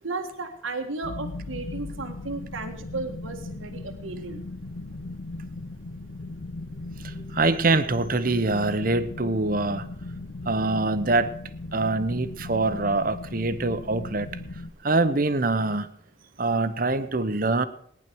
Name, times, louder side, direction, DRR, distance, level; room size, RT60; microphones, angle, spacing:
voice 1, 0.0-4.4, right 3 dB, 90° right, 6 dB, 1.7 m, -34 dB
sound 1, 1.0-14.7, left 2 dB, 70° left, 0.8 m, -38 dB
voice 2, 7.0-9.9 10.4-11.3 11.7-14.3 14.8-15.9 16.4-17.7, right 3 dB, 45° right, 12 dB, 0.9 m, -24 dB
18.5 x 10.5 x 4.7 m, 0.65 s
head